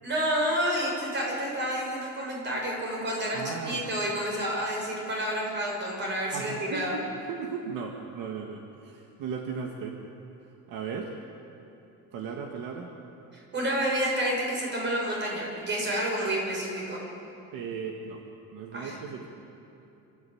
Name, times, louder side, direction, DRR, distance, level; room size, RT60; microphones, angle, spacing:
voice 1, 0.0-7.0 13.5-17.0 18.7-19.0, equal, 30° right, -1 dB, 6.4 m, -29 dB
voice 2, 3.3-3.9 6.3-7.0 7.3-10.0 10.4-11.1 12.1-12.9 17.5-18.2 18.5-19.3, right 6 dB, 70° right, 2 dB, 1.9 m, -36 dB
28.5 x 14.0 x 8.7 m, 2.9 s
cardioid pair, 155°, 35 cm